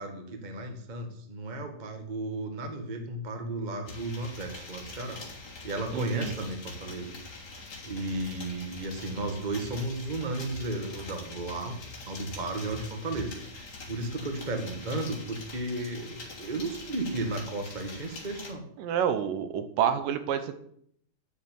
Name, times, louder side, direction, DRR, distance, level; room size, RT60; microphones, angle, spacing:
voice 1, 0.0-5.2 5.6-7.1 7.8-11.8 12.1-18.7, right 2 dB, 55° right, 4 dB, 0.5 m, -34 dB
sound 1, 3.9-18.5, left 3 dB, 30° left, 3.3 m, -44 dB
voice 2, 5.9-6.3 18.8-20.6, right 8 dB, 75° right, 9 dB, 2.5 m, -28 dB
9.0 x 7.3 x 9.1 m, 0.67 s
omnidirectional pair, 4.1 m